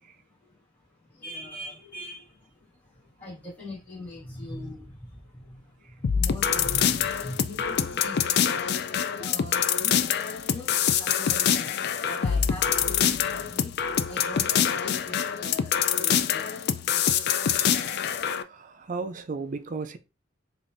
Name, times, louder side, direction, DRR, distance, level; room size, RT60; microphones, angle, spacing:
voice 1, 1.2-2.3 3.2-5.6 6.0-8.5 9.2-11.8 12.0-13.7 14.1-16.6 16.9-17.9, left 1 dB, 10° left, 1.9 m, -41 dB
sound 1, 6.0-18.4, left 8 dB, 55° left, 0.3 m, -25 dB
voice 2, 18.4-20.0, right 4 dB, 40° right, 0.4 m, -34 dB
5.1 x 2.4 x 2.6 m
head